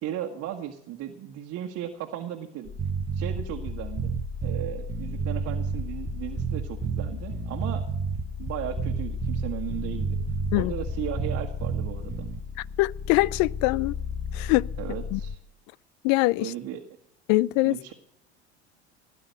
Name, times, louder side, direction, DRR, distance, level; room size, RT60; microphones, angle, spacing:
voice 1, 0.0-2.7 3.1-4.1 4.4-7.9 8.4-10.2 10.5-12.3 14.8-15.4 16.4-16.8 17.6-17.9, right 11 dB, 50° right, 1.6 m, -36 dB
sound 1, 2.7-15.4, left 6 dB, 20° left, 0.7 m, -35 dB
sound 2, 2.8-12.4, right 8 dB, 25° right, 0.9 m, -31 dB
voice 2, 12.8-13.9 14.3-14.7 15.1-15.2 16.0-16.5 17.3-17.8, left 21 dB, 55° left, 0.5 m, -23 dB
18.0 x 10.0 x 5.7 m
hypercardioid pair, 80°, 32 cm